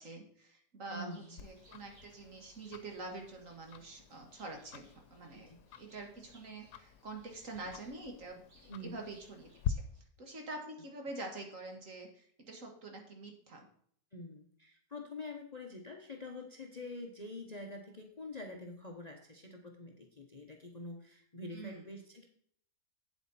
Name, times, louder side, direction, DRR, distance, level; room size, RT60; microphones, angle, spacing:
voice 1, 0.0-5.5 5.8-8.4 8.8-9.8 10.2-13.7 21.5-21.8, right 2 dB, 55° right, 3 dB, 2.0 m, -46 dB
voice 2, 0.9-1.4 5.3-5.6 8.7-9.0 14.1-22.3, left 2 dB, 30° left, 3 dB, 0.9 m, -46 dB
Bird, 1.0-10.0, right 2 dB, 80° right, 3.3 m, -67 dB
Tick-tock, 1.4-9.7, left 9 dB, 85° left, 1.2 m, -46 dB
8.3 x 7.9 x 4.2 m, 0.63 s
omnidirectional pair, 1.7 m